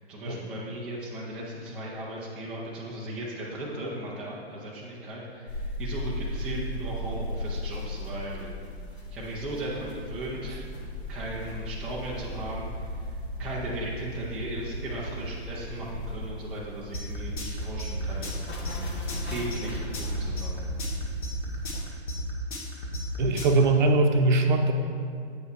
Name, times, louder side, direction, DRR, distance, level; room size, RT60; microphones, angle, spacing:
voice 1, 0.1-8.5 9.1-10.8 11.1-18.5 19.3-20.6, right 1 dB, 5° right, -8 dB, 0.4 m, -37 dB
sound 1, 5.5-21.8, equal, 70° left, 2.1 m, -36 dB
sound 2, 16.9-23.6, equal, 45° left, 1.9 m, -34 dB
voice 2, 23.2-24.7, right 2 dB, 45° right, 5 dB, 0.8 m, -21 dB
8.1 x 5.4 x 4.6 m, 2.3 s
hypercardioid pair, 140°, 33 cm